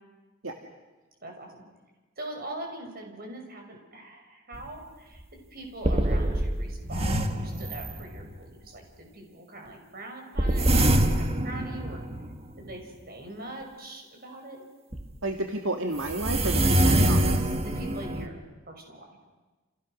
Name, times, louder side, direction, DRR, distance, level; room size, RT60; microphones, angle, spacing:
voice 1, 1.2-1.6 2.2-5.2 5.5-12.0 12.6-14.7 17.6-18.3 18.7-19.1, right 1 dB, 45° right, 2 dB, 6.2 m, -42 dB
sound 1, 4.5-4.6 5.2-5.3 5.8-8.4 10.4-12.7 14.9-15.0 16.0-18.3, right 1 dB, 30° right, 1.6 m, -25 dB
voice 2, 15.2-17.5, right 2 dB, 70° right, 3 dB, 2.0 m, -31 dB
30.0 x 28.5 x 6.4 m, 1.2 s
head